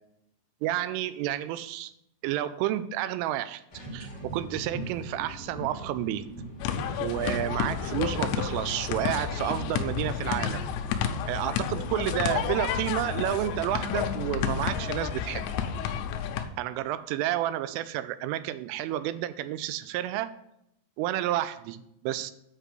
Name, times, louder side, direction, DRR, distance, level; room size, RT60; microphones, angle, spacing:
voice 1, 0.6-1.9 2.2-3.6 3.9-6.2 7.0-10.6 11.3-15.5 16.6-20.3 21.0-21.8 22.0-22.3, right 13 dB, 85° right, 13 dB, 3.1 m, -30 dB
sound 1, 3.7-11.1, right 1 dB, 30° left, 2.2 m, -43 dB
sound 2, 6.6-16.4, left 8 dB, 80° left, 2.7 m, -30 dB
8.5 x 5.4 x 7.9 m, 0.78 s
omnidirectional pair, 5.7 m